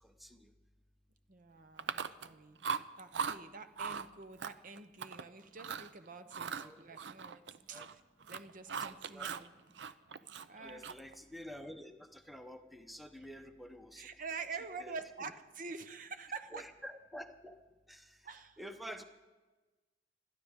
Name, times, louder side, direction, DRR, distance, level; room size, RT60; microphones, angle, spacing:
voice 1, 0.0-0.5 6.6-7.0 7.7-7.9 8.9-9.3 10.6-14.1 14.8-14.9 15.2-15.3 16.5-17.6 17.9-18.2 18.6-19.0, equal, ahead, 6 dB, 0.9 m, -49 dB
voice 2, 1.3-2.6 3.0-7.8 8.3-9.5 10.5-10.8 14.0-16.6 18.2-18.6 19.0-19.1, right 4 dB, 50° right, 9 dB, 0.8 m, -47 dB
Chewing mastication, 1.8-2.3 2.6-3.4 3.8-4.1 4.4-5.2 5.6-5.9 6.3-9.5 9.8-11.1, right 6 dB, 80° right, 0.5 m, -39 dB
25.5 x 12.5 x 3.7 m, 1.2 s
head